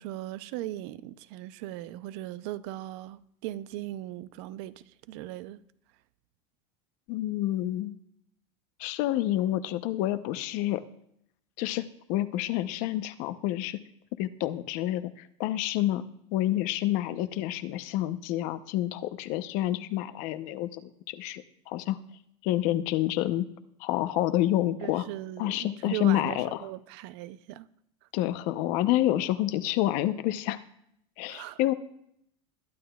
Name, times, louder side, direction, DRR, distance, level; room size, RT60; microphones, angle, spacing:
voice 1, 0.0-5.6 24.8-27.7 28.0-28.1 31.3-31.6, right 14 dB, 65° right, 0.5 m, -39 dB
voice 2, 7.1-7.9 8.8-10.8 11.6-11.8 12.1-13.8 14.2-16.0 16.3-22.0 22.4-23.5 23.8-25.0 25.4-26.7 28.1-30.6 31.2-31.7, left 14 dB, 55° left, 0.7 m, -28 dB
21.0 x 11.0 x 2.3 m
supercardioid pair, 155°, 15 cm